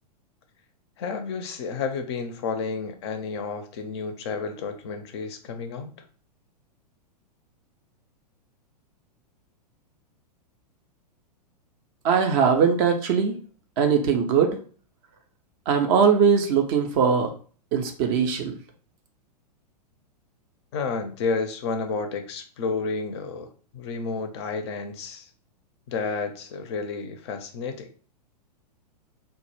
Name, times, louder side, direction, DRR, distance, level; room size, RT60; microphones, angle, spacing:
voice 1, 1.0-5.9 20.7-23.5 23.7-25.3 25.9-27.9, left 4 dB, 40° left, 6 dB, 0.4 m, -31 dB
voice 2, 12.0-13.4 13.8-14.6 15.7-17.3 17.7-18.6, right 6 dB, 35° right, 5 dB, 0.3 m, -21 dB
2.1 x 2.0 x 3.0 m, 0.42 s
figure-of-eight pair, 100°, 21 cm